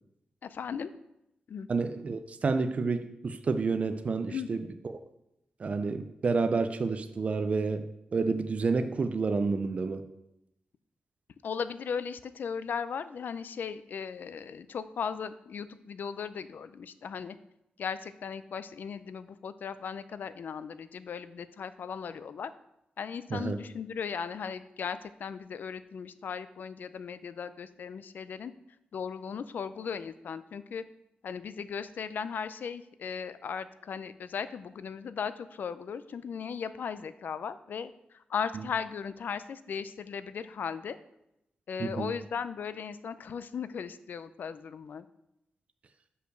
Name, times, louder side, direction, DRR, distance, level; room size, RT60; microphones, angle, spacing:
voice 1, 0.4-0.9 1.5-1.7 4.3-4.5 11.4-17.4 17.8-22.5 23.0-28.5 28.9-30.8 31.2-41.0 41.7-45.1, left 6 dB, 70° left, 13 dB, 0.4 m, -37 dB
voice 2, 1.7-5.0 5.6-10.0 23.3-23.6 41.8-42.1, right 4 dB, 40° right, 9 dB, 0.5 m, -30 dB
6.5 x 5.5 x 6.3 m, 0.85 s
wide cardioid pair, 135°, 3 cm